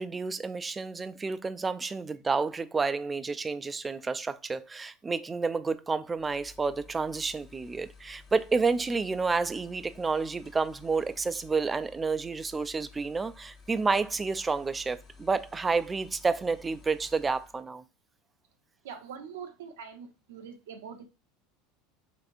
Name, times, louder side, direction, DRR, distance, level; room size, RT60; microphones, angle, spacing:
voice 1, 0.0-17.8, right 4 dB, 20° right, 0.3 m, -30 dB
sound 1, 6.1-17.7, left 4 dB, 40° left, 1.0 m, -54 dB
voice 2, 18.8-21.0, right 7 dB, 80° right, 0.7 m, -43 dB
3.5 x 3.3 x 2.5 m
hypercardioid pair, 90°, 0 cm